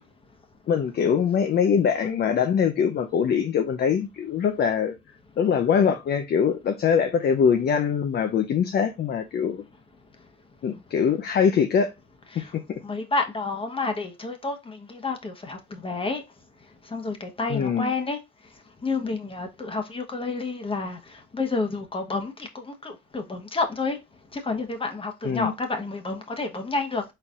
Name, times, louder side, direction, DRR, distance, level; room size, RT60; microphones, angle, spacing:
voice 1, 0.7-5.0 5.4-9.6 10.6-11.9 12.4-12.5 17.5-17.9 25.2-25.5, left 7 dB, 55° left, 0.6 m, -23 dB
voice 2, 12.8-16.2 16.9-18.2 18.8-21.0 21.3-24.0 24.3-27.0, left 3 dB, 25° left, 1.1 m, -29 dB
4.3 x 3.9 x 2.4 m
cardioid pair, 90°, 20 cm